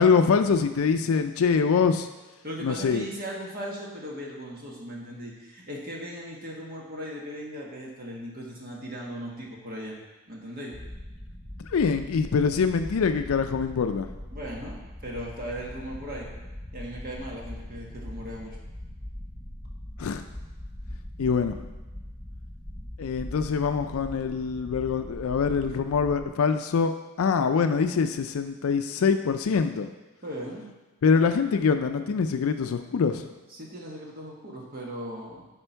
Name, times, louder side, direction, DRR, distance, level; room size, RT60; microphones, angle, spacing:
voice 1, 0.0-2.1 2.6-3.1 11.7-14.1 20.0-20.2 21.2-21.7 23.0-29.9 31.0-33.3, left 5 dB, 75° left, 8 dB, 0.4 m, -24 dB
voice 2, 2.4-10.0 10.3-10.7 14.3-14.8 15.0-16.3 16.7-18.6 30.2-30.7 33.5-35.5, equal, 40° right, -2 dB, 1.4 m, -38 dB
sound 1, 10.7-26.3, left 1 dB, ahead, 0.9 m, -41 dB
11.0 x 4.4 x 4.5 m, 1.1 s
head